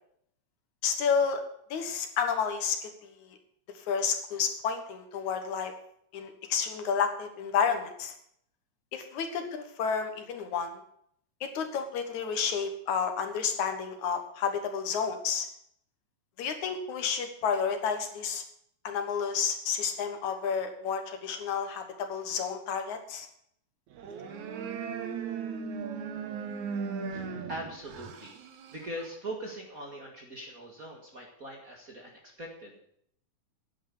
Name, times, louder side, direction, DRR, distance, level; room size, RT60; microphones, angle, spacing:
voice 1, 0.8-1.4 1.7-3.3 3.8-5.7 6.1-8.1 8.9-10.8 11.4-15.5 16.4-18.4 18.8-23.3, left 6 dB, 70° left, 6 dB, 2.7 m, -30 dB
sound 1, 23.9-29.1, right 6 dB, 70° right, 2.5 m, -37 dB
voice 2, 27.1-32.8, right 1 dB, 35° right, 0 dB, 1.8 m, -42 dB
10.0 x 8.8 x 8.5 m, 0.68 s
omnidirectional pair, 3.6 m